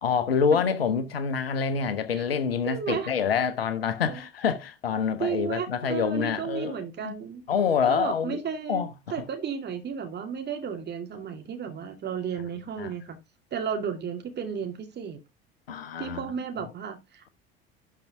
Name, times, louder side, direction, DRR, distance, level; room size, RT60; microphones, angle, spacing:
voice 1, 0.0-6.8 7.0-7.1 7.5-8.4 8.7-8.9 9.2-9.3 12.8-12.9 15.7-16.3, left 6 dB, 75° left, 1.2 m, -26 dB
voice 2, 2.7-3.1 4.1-4.2 5.2-7.5 7.9-8.8 9.1-13.2 13.5-15.2 16.0-17.3, right 7 dB, 35° right, 2.3 m, -33 dB
12.0 x 4.8 x 3.5 m
figure-of-eight pair, 60°, 30 cm